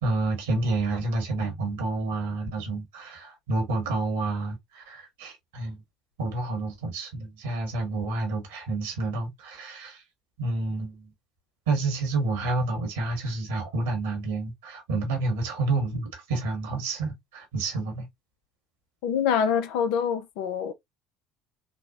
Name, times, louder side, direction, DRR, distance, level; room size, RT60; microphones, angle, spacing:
voice 1, 0.0-5.8 6.2-10.0 10.4-11.1 11.7-18.0, right 3 dB, 75° right, 1.4 m, -29 dB
voice 2, 19.0-20.7, left 7 dB, 70° left, 0.6 m, -25 dB
4.2 x 2.2 x 2.4 m
hypercardioid pair, 65°, 0 cm